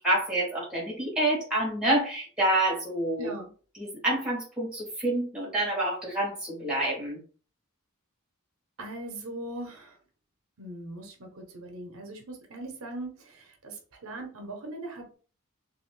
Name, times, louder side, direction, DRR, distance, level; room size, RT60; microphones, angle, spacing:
voice 1, 0.0-3.3 3.7-7.2, right 1 dB, 5° right, -4 dB, 1.4 m, -27 dB
voice 2, 3.2-3.5 8.8-10.0 10.6-15.1, right 2 dB, 75° right, 2 dB, 0.8 m, -40 dB
2.8 x 2.6 x 3.1 m, 0.40 s
head